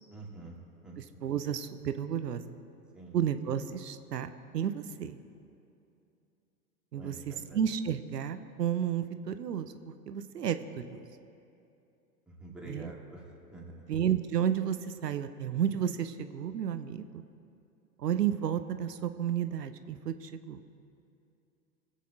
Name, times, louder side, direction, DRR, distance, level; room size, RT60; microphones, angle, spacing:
voice 1, 0.1-0.6 0.8-1.0 2.9-3.1 6.9-7.6 12.3-13.9, right 2 dB, ahead, -5 dB, 2.8 m, -47 dB
voice 2, 1.0-2.4 3.1-5.2 6.9-11.0 12.7-12.9 13.9-17.2 18.0-20.6, right 9 dB, 75° right, 11 dB, 0.8 m, -32 dB
22.5 x 8.4 x 3.8 m, 2.7 s
figure-of-eight pair, 90°, 49 cm